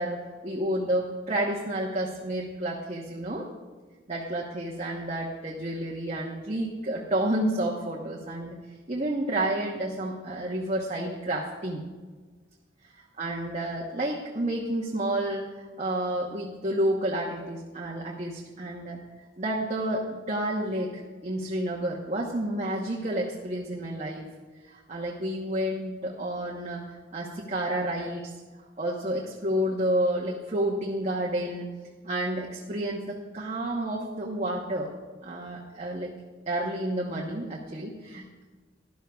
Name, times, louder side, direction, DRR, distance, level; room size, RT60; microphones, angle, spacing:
voice 1, 0.0-3.5 4.1-8.6 8.9-11.8 13.2-19.0 19.4-20.9 21.2-24.3 24.7-26.8 27.1-28.3 28.8-31.7 32.0-34.9 35.2-36.1 36.5-38.2, right 1 dB, 35° right, -2 dB, 1.0 m, -30 dB
17.5 x 11.5 x 2.4 m, 1.4 s
head